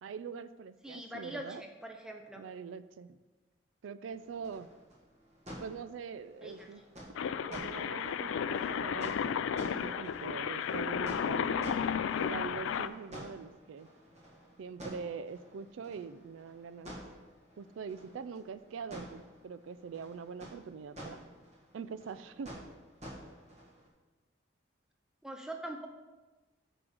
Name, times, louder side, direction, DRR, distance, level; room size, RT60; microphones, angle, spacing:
voice 1, 0.0-1.6 2.4-3.2 3.8-4.7 5.6-6.8 7.4-11.7 12.2-13.9 14.6-16.9 17.6-21.2 21.7-22.5, right 6 dB, 85° right, 14 dB, 0.3 m, -43 dB
voice 2, 0.8-2.4 6.4-6.7 25.2-25.9, right 1 dB, 5° right, 3 dB, 0.6 m, -43 dB
sound 1, 4.1-23.9, equal, 35° right, 1.7 m, -51 dB
sound 2, 7.2-12.9, left 7 dB, 85° left, 0.3 m, -33 dB
6.0 x 5.0 x 6.4 m, 1.2 s
head